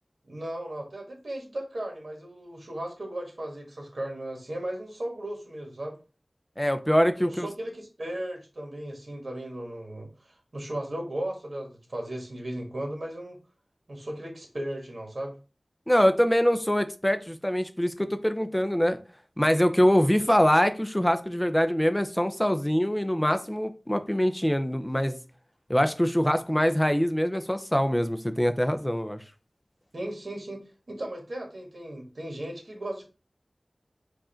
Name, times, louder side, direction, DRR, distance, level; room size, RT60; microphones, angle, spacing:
voice 1, 0.2-6.0 7.2-13.4 13.9-15.4 20.3-20.5 29.9-33.0, right 1 dB, 60° right, 1.4 m, -36 dB
voice 2, 6.6-7.5 15.9-19.0 19.4-25.2 25.7-29.2, equal, 10° left, 0.5 m, -24 dB
4.8 x 2.5 x 4.3 m
wide cardioid pair, 55°, 0 cm